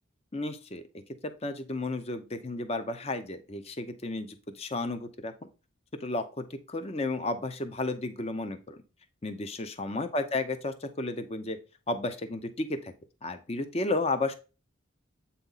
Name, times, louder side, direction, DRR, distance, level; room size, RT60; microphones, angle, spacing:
voice 1, 0.3-0.8 1.2-5.5 6.0-8.8 9.2-11.6 11.9-12.9 13.2-14.3, left 2 dB, 30° left, 9 dB, 0.6 m, -33 dB
8.1 x 4.1 x 4.0 m, 0.31 s
head